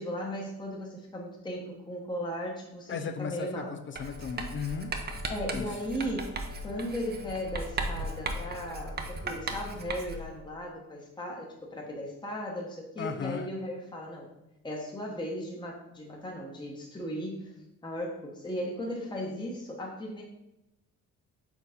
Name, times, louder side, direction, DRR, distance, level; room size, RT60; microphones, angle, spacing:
voice 1, 0.0-3.7 5.3-6.4 6.6-14.3 14.6-17.5 17.8-20.2, equal, 15° left, -1 dB, 1.1 m, -36 dB
voice 2, 2.9-4.9 5.5-5.7 13.0-13.5, left 6 dB, 40° left, 9 dB, 0.5 m, -35 dB
Brass instrument, 3.9-9.7, left 6 dB, 85° left, 1.2 m, -51 dB
Writing, 4.0-10.4, right 2 dB, 35° right, 0.8 m, -37 dB
4.6 x 4.0 x 5.1 m, 0.92 s
cardioid pair, 90°, 30 cm